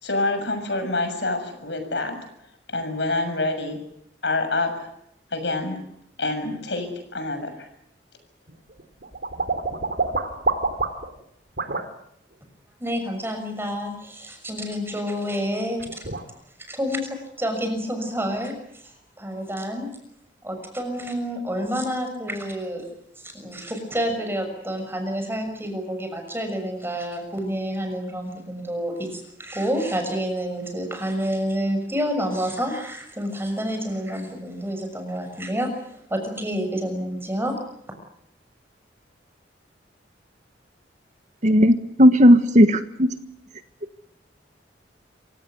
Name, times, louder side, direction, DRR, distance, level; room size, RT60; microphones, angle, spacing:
voice 1, 0.0-2.2 2.7-3.8 4.2-4.9 5.3-5.9 6.2-7.7, left 2 dB, 75° left, 8 dB, 6.9 m, -27 dB
sound 1, 8.5-11.2 11.6-11.9 15.4-15.5 15.8-16.2, right 3 dB, 65° right, 3.0 m, -27 dB
voice 2, 12.8-16.0 16.7-18.5 19.2-19.9 20.4-22.8 23.2-35.7 36.1-37.6, equal, 15° right, 5 dB, 6.5 m, -28 dB
voice 3, 41.4-43.1, equal, 45° right, 10 dB, 1.5 m, -15 dB
27.0 x 17.0 x 9.5 m, 0.77 s
head